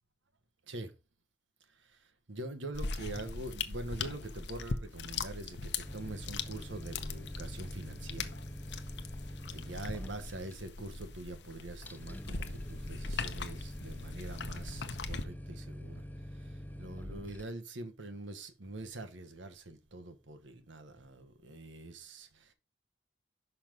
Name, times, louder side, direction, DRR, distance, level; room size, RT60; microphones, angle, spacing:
voice 1, 1.7-8.3 9.5-22.5, right 2 dB, 75° right, 1.2 m, -44 dB
sound 1, 2.7-15.2, left 4 dB, 65° left, 0.8 m, -40 dB
sound 2, 5.8-17.4, equal, 10° left, 0.5 m, -45 dB
6.1 x 5.6 x 5.1 m
head